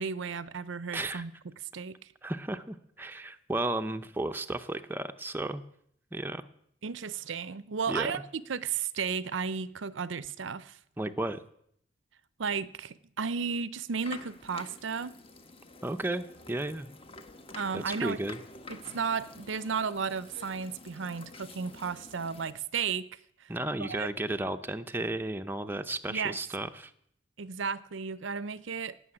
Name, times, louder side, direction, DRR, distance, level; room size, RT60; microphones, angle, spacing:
voice 1, 0.0-1.3 1.7-2.0 6.8-10.8 12.4-15.1 17.6-18.2 18.7-23.1 23.4-23.5 23.8-24.1 26.1-26.4 27.4-29.1, right 6 dB, 65° right, 0.6 m, -34 dB
voice 2, 0.9-1.2 2.2-5.6 6.1-6.5 7.9-8.1 11.0-11.4 15.8-16.9 17.7-18.4 23.5-26.9, right 2 dB, 10° right, 0.6 m, -33 dB
sound 1, 13.9-22.5, left 3 dB, 30° left, 1.2 m, -48 dB
17.0 x 6.7 x 9.8 m
head